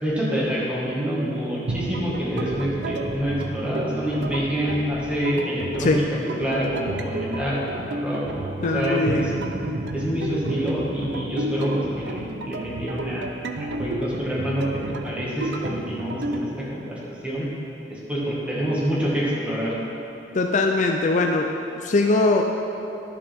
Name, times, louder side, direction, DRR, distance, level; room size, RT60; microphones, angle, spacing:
voice 1, 0.0-9.3 9.9-13.2 13.6-17.5 17.9-19.7, equal, 5° right, -7 dB, 1.8 m, -27 dB
sound 1, 1.7-16.4, right 2 dB, 70° right, 0.5 m, -31 dB
voice 2, 8.6-9.3 20.3-21.5 21.8-22.4, left 3 dB, 45° left, 3 dB, 0.4 m, -21 dB
12.0 x 6.8 x 3.6 m, 2.9 s
head